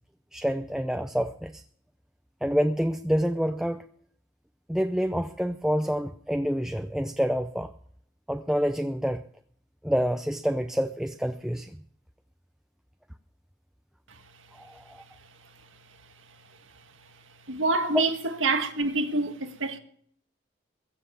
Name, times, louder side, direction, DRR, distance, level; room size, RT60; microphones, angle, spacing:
voice 1, 0.3-1.6 2.4-3.8 4.7-7.7 8.3-9.2 9.8-11.8 14.5-15.0 17.9-18.1, equal, 5° right, 0.5 m, -27 dB
voice 2, 17.5-18.1 18.4-19.8, right 3 dB, 85° right, 1.8 m, -26 dB
22.5 x 7.5 x 7.1 m
head